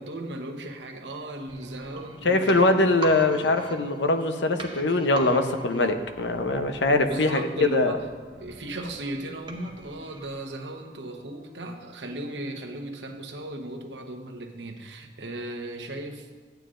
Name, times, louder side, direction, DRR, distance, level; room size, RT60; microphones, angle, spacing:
voice 1, 0.0-3.0 3.3-3.4 6.9-8.1 8.3-16.3, right 1 dB, 85° right, 4 dB, 1.0 m, -36 dB
sound 1, 1.5-11.2 11.5-11.6, right 3 dB, 25° right, 0.9 m, -42 dB
voice 2, 2.2-7.9, left 2 dB, 80° left, 7 dB, 0.7 m, -22 dB
14.0 x 9.1 x 2.5 m, 1.4 s
head